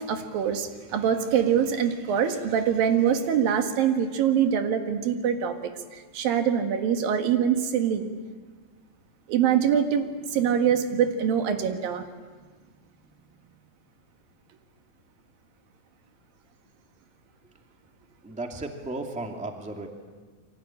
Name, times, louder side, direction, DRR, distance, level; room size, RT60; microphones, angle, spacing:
voice 1, 0.0-8.1 9.3-12.0, right 8 dB, 90° right, 6 dB, 3.5 m, -24 dB
voice 2, 18.2-19.9, right 2 dB, 5° right, 3 dB, 1.7 m, -34 dB
28.5 x 23.5 x 8.9 m, 1.5 s
omnidirectional pair, 4.0 m